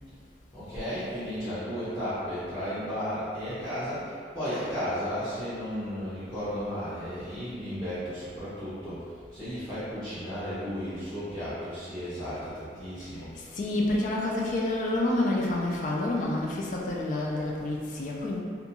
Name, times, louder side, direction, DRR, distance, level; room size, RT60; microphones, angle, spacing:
voice 1, 0.5-13.3, equal, 20° left, -16 dB, 0.8 m, -34 dB
voice 2, 13.3-18.4, left 2 dB, 45° left, -2 dB, 0.3 m, -28 dB
2.5 x 2.3 x 2.8 m, 2.1 s
head